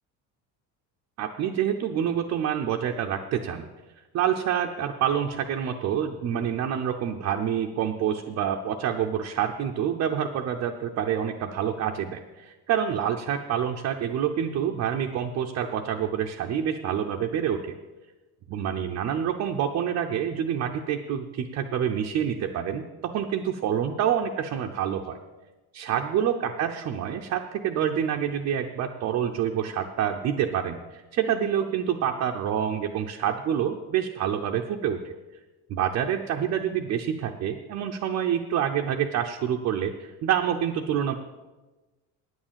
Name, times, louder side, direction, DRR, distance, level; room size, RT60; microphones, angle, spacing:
voice 1, 1.2-3.7 4.1-17.7 18.5-25.2 25.7-35.1 35.7-41.1, right 9 dB, 45° right, 2 dB, 0.7 m, -27 dB
9.4 x 8.9 x 7.4 m, 1.2 s
cardioid pair, 180°, 37 cm